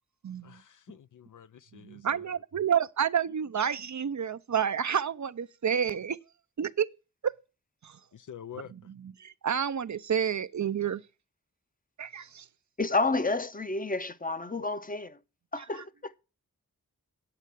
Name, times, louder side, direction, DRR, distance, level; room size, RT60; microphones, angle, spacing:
voice 1, 0.4-2.3 8.1-8.7, left 9 dB, 60° left, 0.5 m, -47 dB
voice 2, 1.8-6.2 6.6-6.9 7.2-7.3 7.8-7.9 8.7-11.0 12.0-12.4, right 8 dB, 55° right, 0.6 m, -29 dB
voice 3, 12.8-15.2 15.5-16.2, left 3 dB, 25° left, 0.8 m, -30 dB
8.3 x 7.8 x 8.3 m
cardioid pair, 40°, 34 cm